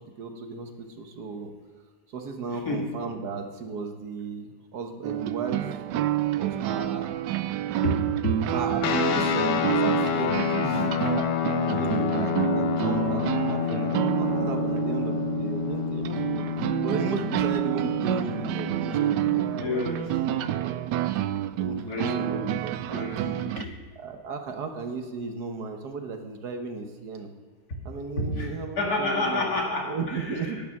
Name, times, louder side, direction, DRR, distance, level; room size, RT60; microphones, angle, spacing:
voice 1, 0.1-1.5 2.1-5.8 6.4-7.1 8.5-10.9 11.6-16.5 16.8-20.9 21.6-23.1 24.0-27.3 27.9-29.5 29.9-30.6, right 4 dB, 70° right, 5 dB, 1.7 m, -35 dB
sound 1, 5.0-23.7, right 12 dB, 90° right, 1.2 m, -28 dB
sound 2, 8.8-20.6, left 9 dB, 85° left, 1.4 m, -29 dB
voice 2, 11.7-12.1 19.6-20.1 21.8-22.6 22.9-23.7 28.2-30.5, left 2 dB, 60° left, 0 dB, 2.7 m, -30 dB
11.0 x 10.0 x 5.9 m, 1.5 s
omnidirectional pair, 1.8 m